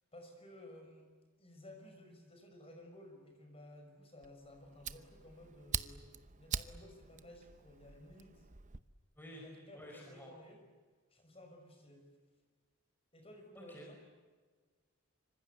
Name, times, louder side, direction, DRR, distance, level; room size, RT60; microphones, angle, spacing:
voice 1, 0.1-1.1 1.4-6.1 6.4-8.5 9.3-10.6 11.1-12.1 13.1-14.0, left 1 dB, 25° left, 4 dB, 5.9 m, -55 dB
Fire, 4.2-8.8, right 7 dB, 35° right, 0.8 m, -44 dB
voice 2, 9.7-10.3 13.5-13.9, equal, 10° left, 0 dB, 4.9 m, -51 dB
26.0 x 25.5 x 8.3 m, 1.4 s
head